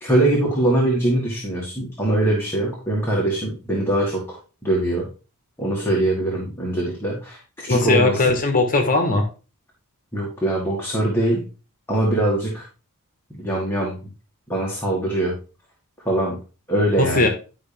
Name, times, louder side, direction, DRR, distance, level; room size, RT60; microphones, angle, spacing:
voice 1, 0.0-5.1 5.6-8.3 10.1-11.4 11.9-12.7 13.4-14.0 14.5-15.3 16.0-16.4 16.7-17.3, right 1 dB, 10° left, -3 dB, 2.1 m, -22 dB
voice 2, 7.7-9.3 17.0-17.3, left 2 dB, 40° left, 4 dB, 1.5 m, -19 dB
11.5 x 5.7 x 3.5 m, 0.34 s
head